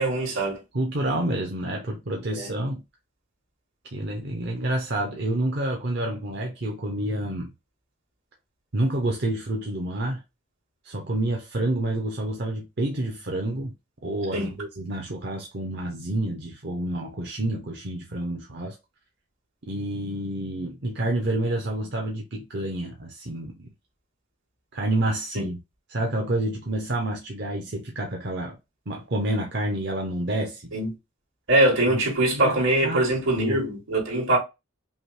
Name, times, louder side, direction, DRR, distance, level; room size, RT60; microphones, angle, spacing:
voice 1, 0.0-0.6 2.4-2.5 14.3-14.5 25.3-25.4 30.7-30.9 31.5-34.4, right 1 dB, 75° right, 2.4 m, -22 dB
voice 2, 0.7-2.8 3.9-7.5 8.7-10.2 10.8-13.7 14.0-18.8 19.7-23.7 24.7-25.6 25.9-28.6 28.9-30.7 31.9-32.0 32.3-32.6 32.8-33.1 33.4-33.6, right 1 dB, 55° right, 0.7 m, -28 dB
5.5 x 2.1 x 3.2 m
head